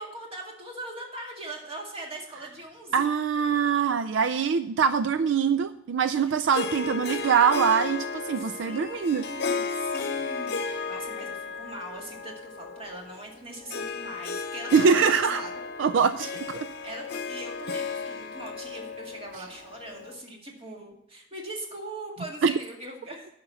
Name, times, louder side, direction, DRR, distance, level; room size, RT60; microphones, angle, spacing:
voice 1, 0.0-3.0 6.1-6.2 8.3-15.5 16.2-16.4 16.8-23.3, right 1 dB, 30° right, 0 dB, 2.1 m, -41 dB
voice 2, 2.9-9.2 14.7-15.4 15.8-16.6 22.4-22.5, right 6 dB, 70° right, 12 dB, 0.4 m, -23 dB
Harp, 6.5-20.2, left 4 dB, 55° left, 0.9 m, -34 dB
9.5 x 5.9 x 6.9 m, 0.81 s
head